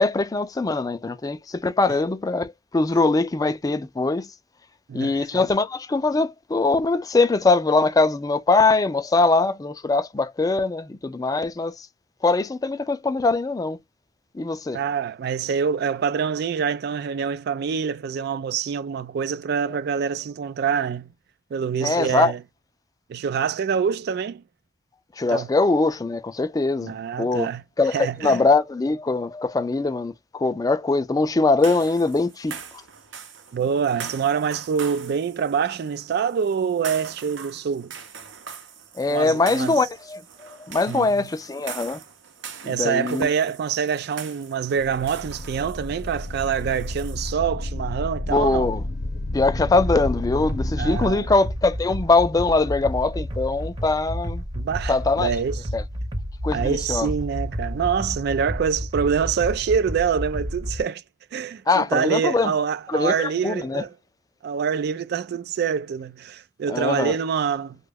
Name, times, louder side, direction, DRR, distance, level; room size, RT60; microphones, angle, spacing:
voice 1, 0.0-4.3 4.9-11.9 12.2-13.8 14.3-14.8 21.8-22.3 25.2-27.5 27.8-32.6 39.0-42.0 42.6-43.3 48.3-48.8 49.3-54.4 54.9-55.3 55.7-55.8 56.4-57.1 61.7-62.5 62.9-63.8 66.7-67.2, left 3 dB, 20° left, 0.3 m, -22 dB
voice 2, 4.9-5.4 14.7-21.1 21.5-22.4 23.1-24.4 25.3-25.5 26.8-27.6 27.9-28.5 33.5-37.9 39.1-39.8 40.9-41.3 42.6-48.7 50.8-51.3 54.6-55.6 56.5-61.0 61.3-63.9 64.4-67.8, right 7 dB, 60° right, 0.3 m, -25 dB
sound 1, 31.6-47.3, right 7 dB, 80° right, 0.7 m, -42 dB
sound 2, 44.8-51.1, left 1 dB, 65° left, 0.8 m, -31 dB
sound 3, 49.5-60.8, equal, 30° right, 0.8 m, -31 dB
3.0 x 2.2 x 3.4 m
head